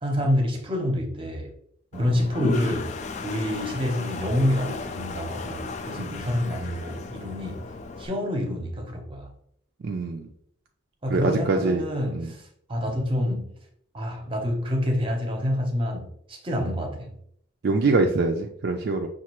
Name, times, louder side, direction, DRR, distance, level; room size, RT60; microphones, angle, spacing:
voice 1, 0.0-1.5 2.0-2.9 3.2-7.6 8.0-9.3 11.0-13.5 13.9-17.2, left 1 dB, 25° right, 2 dB, 0.8 m, -27 dB
Toilet flush, 1.9-8.1, left 3 dB, 35° left, 0.3 m, -34 dB
voice 2, 9.8-10.3 11.1-11.8 12.1-12.3 16.6-16.7 17.6-19.1, right 3 dB, 55° right, 3 dB, 0.4 m, -24 dB
5.8 x 2.4 x 2.9 m, 0.70 s
head